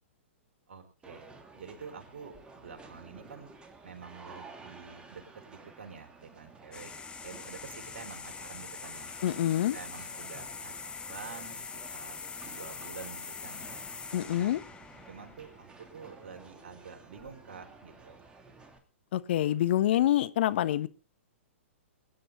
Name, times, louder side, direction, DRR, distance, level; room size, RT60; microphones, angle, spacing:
voice 1, 0.7-3.5 3.8-9.1 9.7-11.6 11.9-13.8 14.3-14.6 15.1-18.3, right 5 dB, 60° right, 4.5 m, -48 dB
sound 1, 1.0-18.8, right 4 dB, 15° right, 2.6 m, -52 dB
sound 2, 6.7-15.9, left 6 dB, 15° left, 1.7 m, -43 dB
voice 2, 9.2-9.8 14.1-14.6 19.1-20.9, left 12 dB, 55° left, 1.1 m, -26 dB
23.0 x 10.5 x 3.9 m
figure-of-eight pair, 115°, 7 cm